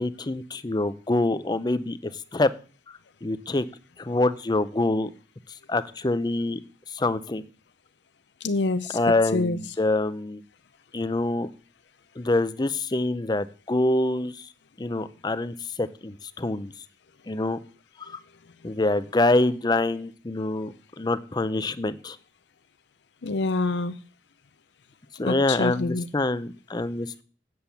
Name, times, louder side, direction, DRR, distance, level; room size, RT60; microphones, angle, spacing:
voice 1, 0.0-2.5 3.2-3.6 4.0-5.1 5.7-6.6 6.9-7.4 8.9-10.4 10.9-11.5 12.2-14.5 14.8-16.7 17.3-17.6 18.1-18.2 18.6-22.2 25.2-27.2, left 2 dB, 25° left, 14 dB, 0.6 m, -25 dB
voice 2, 8.4-9.0 9.3-9.6 23.2-24.0 25.3-26.1, left 3 dB, 70° left, 9 dB, 0.6 m, -26 dB
8.5 x 7.8 x 7.0 m, 0.39 s
head